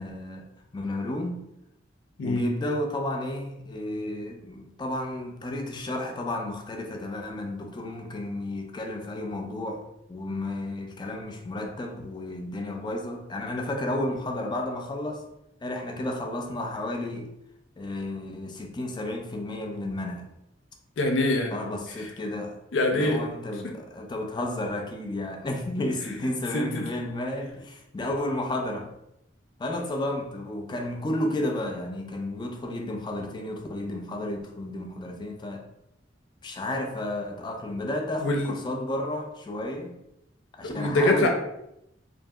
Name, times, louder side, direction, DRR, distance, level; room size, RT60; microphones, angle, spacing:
voice 1, 0.0-1.4 2.2-9.8 10.1-15.2 15.6-17.3 17.8-20.3 21.5-22.6 22.9-28.9 29.6-35.6 36.4-39.9 40.5-41.3, left 1 dB, 25° left, 0.3 m, -32 dB
voice 2, 21.0-21.5 22.7-23.2 23.6-23.7 26.5-26.9 38.2-38.5 40.6-41.3, left 2 dB, 90° left, 0.5 m, -24 dB
2.7 x 2.6 x 2.3 m
head